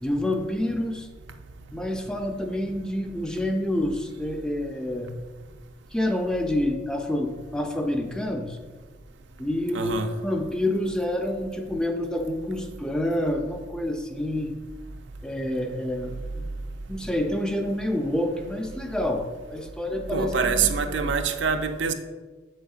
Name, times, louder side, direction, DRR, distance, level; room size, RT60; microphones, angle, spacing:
voice 1, 0.0-1.1 1.7-5.1 5.9-8.6 9.4-10.0 10.2-14.5 15.2-16.5 16.9-19.2 19.5-21.1, left 1 dB, 5° left, 0.4 m, -28 dB
voice 2, 9.7-10.1 20.1-21.9, right 5 dB, 65° right, 0.5 m, -25 dB
7.3 x 6.4 x 2.4 m
head